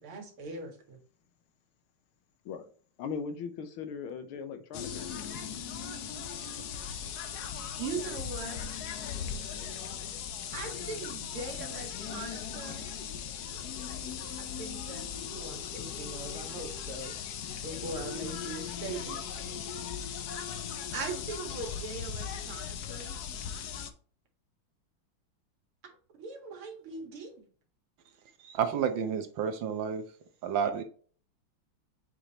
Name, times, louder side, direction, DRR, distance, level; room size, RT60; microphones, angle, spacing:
voice 1, 0.0-1.0 7.8-8.6 10.5-12.9 14.4-17.1 17.6-19.2 20.6-23.2 26.2-27.4, right 4 dB, 85° right, 2.6 m, -41 dB
voice 2, 3.0-5.2, left 6 dB, 80° left, 1.7 m, -39 dB
sound 1, 4.7-23.9, left 8 dB, 65° left, 1.1 m, -38 dB
voice 3, 28.4-30.0 30.4-30.8, right 7 dB, 65° right, 1.6 m, -30 dB
7.6 x 5.0 x 2.9 m
omnidirectional pair, 2.3 m